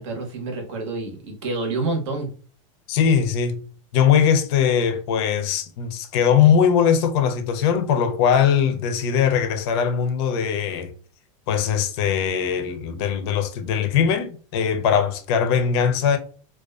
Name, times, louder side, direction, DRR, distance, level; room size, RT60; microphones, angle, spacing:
voice 1, 0.0-2.3, right 3 dB, 60° right, 0.9 m, -28 dB
voice 2, 2.9-3.6 3.9-10.9 11.5-16.2, left 7 dB, 50° left, 0.4 m, -20 dB
2.4 x 2.2 x 2.3 m
supercardioid pair, 160°, 18 cm